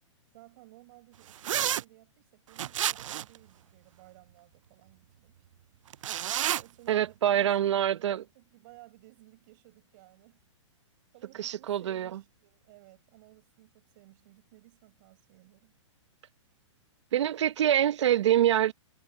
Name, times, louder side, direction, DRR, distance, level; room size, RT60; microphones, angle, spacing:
voice 1, 0.3-5.3 6.4-10.4 11.1-15.7, right 20 dB, 40° right, 6.8 m, -56 dB
sound 1, 1.4-1.8 2.6-3.4 5.9-6.6, right 12 dB, 80° right, 0.4 m, -29 dB
voice 2, 6.9-8.2 11.4-12.2 17.1-18.7, right 11 dB, 65° right, 0.9 m, -25 dB
hypercardioid pair, 165°, 16 cm